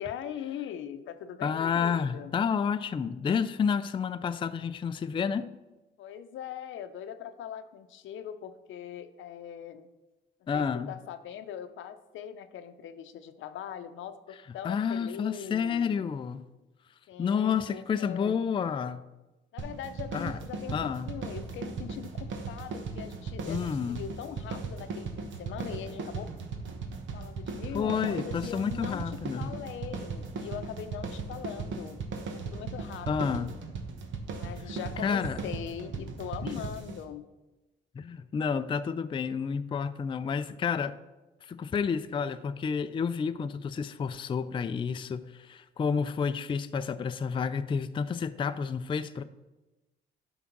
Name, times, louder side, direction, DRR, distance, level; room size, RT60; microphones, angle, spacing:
voice 1, 0.0-2.3 6.0-9.9 10.5-16.1 17.1-18.4 19.5-26.3 27.1-32.0 32.3-33.5 34.4-37.2, left 9 dB, 75° left, 0.6 m, -41 dB
voice 2, 1.4-5.5 10.5-10.9 14.6-16.5 17.2-19.0 20.1-20.4 20.7-21.1 23.5-24.0 27.7-29.5 33.1-33.5 35.0-35.4 36.4-36.7 37.9-41.0 41.4-49.2, left 6 dB, 25° left, 0.3 m, -30 dB
sound 1, 19.6-37.0, right 4 dB, 70° right, 1.1 m, -38 dB
11.0 x 3.7 x 5.9 m
cardioid pair, 90°, 20 cm